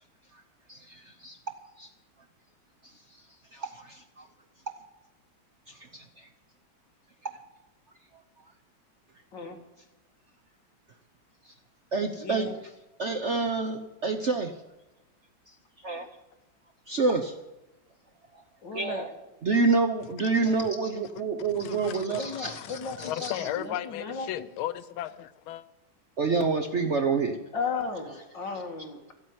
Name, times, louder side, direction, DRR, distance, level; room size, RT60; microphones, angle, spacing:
voice 1, 0.7-1.4 1.8-1.9 2.8-2.9 3.5-4.3 5.7-6.3 11.4-11.5 11.9-12.5 13.0-14.5 15.8-16.1 16.9-17.3 18.3-18.4 18.7-19.1 19.4-22.6 23.0-23.3 26.2-27.4, right 4 dB, 50° right, 0.9 m, -28 dB
voice 2, 12.2-12.6 18.6-19.1 22.1-24.5 27.5-29.1, left 4 dB, 65° left, 2.6 m, -35 dB
voice 3, 21.6-25.6, left 13 dB, 85° left, 1.5 m, -36 dB
13.5 x 8.8 x 9.4 m
omnidirectional pair, 2.2 m